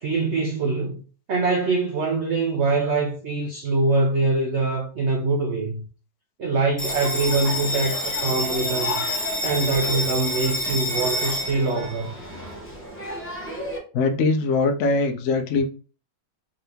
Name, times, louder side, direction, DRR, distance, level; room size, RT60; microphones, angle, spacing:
voice 1, 0.0-1.0 1.3-5.8 6.4-9.1 9.4-12.1, right 3 dB, 70° right, 0.6 m, -24 dB
Bell, 6.8-13.8, left 1 dB, 15° left, 0.5 m, -28 dB
voice 2, 13.9-15.7, left 3 dB, 75° left, 0.6 m, -21 dB
3.7 x 2.8 x 3.4 m
omnidirectional pair, 1.9 m